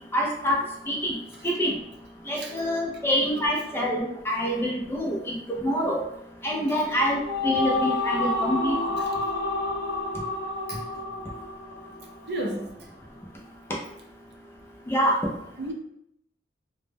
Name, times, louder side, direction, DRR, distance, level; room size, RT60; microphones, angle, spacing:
voice 1, 0.1-1.2 1.4-1.8 2.3-5.4 5.6-6.0 6.4-8.8 14.9-15.2, equal, 15° left, -2 dB, 0.3 m, -26 dB
sound 1, 6.8-12.3, left 2 dB, 75° left, 0.4 m, -29 dB
voice 2, 12.3-12.7 15.6-15.7, right 1 dB, 65° right, 0 dB, 0.5 m, -34 dB
2.1 x 2.0 x 3.2 m, 0.77 s
head